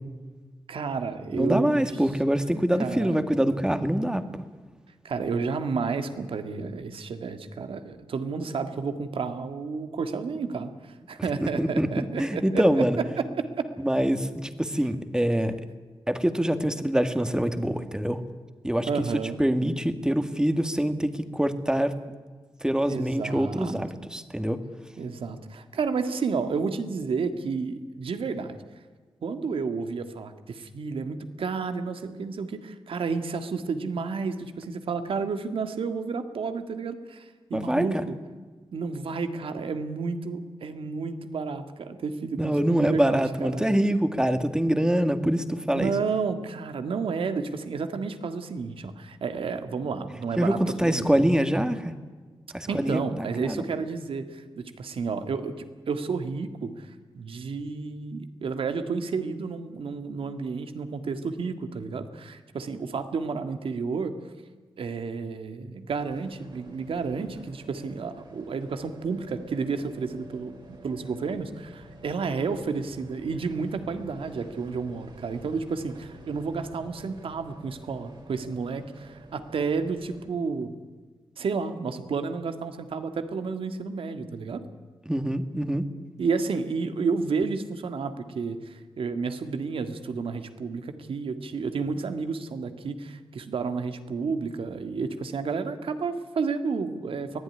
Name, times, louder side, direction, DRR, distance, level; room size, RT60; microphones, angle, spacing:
voice 1, 0.7-1.9 2.8-3.2 5.0-12.6 13.2-13.7 18.9-19.4 22.9-24.1 25.0-28.6 29.2-38.1 38.7-43.6 45.7-51.2 52.7-55.5 55.9-56.9 57.2-64.1 64.8-80.7 81.4-84.6 86.2-97.4, right 5 dB, 80° right, 8 dB, 1.9 m, -31 dB
voice 2, 1.3-4.4 11.4-13.0 13.8-15.6 16.1-18.2 18.6-18.9 19.4-22.0 22.6-24.6 37.5-38.1 42.4-45.9 50.4-51.9 52.5-53.6 85.1-85.9, right 1 dB, 10° right, 9 dB, 1.9 m, -25 dB
sound 1, 65.9-80.3, right 2 dB, 55° right, 4.6 m, -49 dB
23.0 x 16.0 x 9.9 m, 1.4 s
cardioid pair, 80°, 9 cm